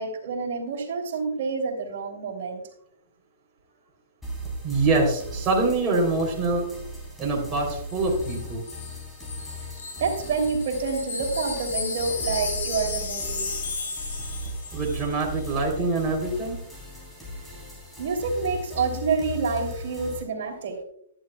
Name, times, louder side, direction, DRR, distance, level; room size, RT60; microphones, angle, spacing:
voice 1, 0.0-2.6 10.0-13.5 18.0-20.8, right 4 dB, 60° right, 1 dB, 3.2 m, -28 dB
sound 1, 4.2-20.2, equal, 5° left, 3.6 m, -37 dB
voice 2, 4.6-6.7 7.2-8.6 14.7-16.6, right 3 dB, 25° right, -2 dB, 3.4 m, -25 dB
Wind chime, 7.9-15.1 15.4-15.6, left 4 dB, 75° left, 3.8 m, -34 dB
11.0 x 11.0 x 2.3 m, 0.69 s
hypercardioid pair, 130°, 0 cm